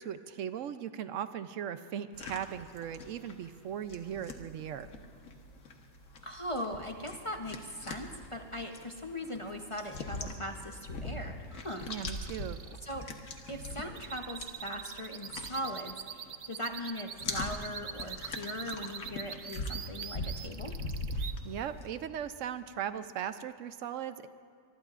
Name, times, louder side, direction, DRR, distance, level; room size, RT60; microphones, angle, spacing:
voice 1, 0.0-4.9 11.9-12.6 21.2-24.3, right 9 dB, 70° right, 11 dB, 0.9 m, -38 dB
sound 1, 2.1-16.4 16.7-21.9, left 2 dB, 75° left, 1.6 m, -42 dB
voice 2, 6.2-11.9 12.8-13.1 13.5-20.7, equal, 30° left, 3 dB, 0.7 m, -39 dB
sound 2, 11.6-21.3, right 8 dB, 55° right, 0.5 m, -44 dB
24.0 x 23.0 x 2.5 m, 2.5 s
omnidirectional pair, 1.4 m